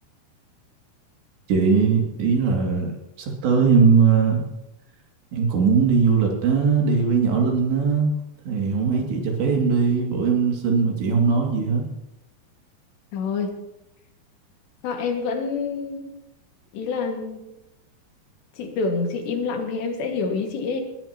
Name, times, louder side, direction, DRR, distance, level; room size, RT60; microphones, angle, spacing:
voice 1, 1.5-4.4 5.3-8.1 8.5-11.8, right 5 dB, 85° right, 1 dB, 4.7 m, -20 dB
voice 2, 13.1-13.5 14.8-16.1 16.7-17.4 18.6-20.8, left 4 dB, 80° left, 2 dB, 4.2 m, -27 dB
21.5 x 15.5 x 3.0 m, 0.91 s
omnidirectional pair, 4.9 m